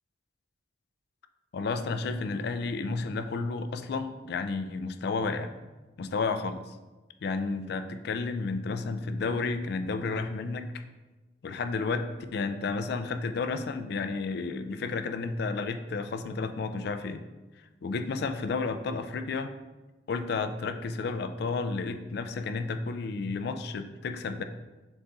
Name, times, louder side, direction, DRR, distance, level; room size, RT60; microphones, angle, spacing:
voice 1, 1.5-5.5 6.0-6.8 7.2-10.7 11.4-17.2 17.6-19.5 20.1-24.4, left 4 dB, 65° left, 9 dB, 0.3 m, -32 dB
4.0 x 3.5 x 3.8 m, 1.2 s
head